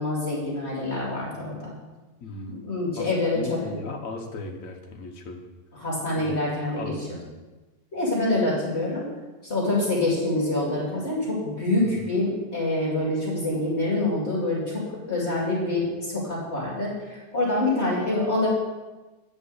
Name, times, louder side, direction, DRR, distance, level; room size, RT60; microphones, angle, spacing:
voice 1, 0.0-1.7 2.5-3.7 5.7-6.9 7.9-9.1 9.4-18.5, left 2 dB, 35° left, -6 dB, 2.6 m, -26 dB
voice 2, 2.2-2.5 3.0-5.4 6.2-6.3 6.7-7.3 11.8-12.0, left 3 dB, 50° left, 2 dB, 1.3 m, -37 dB
9.2 x 5.3 x 6.5 m, 1.2 s
omnidirectional pair, 2.0 m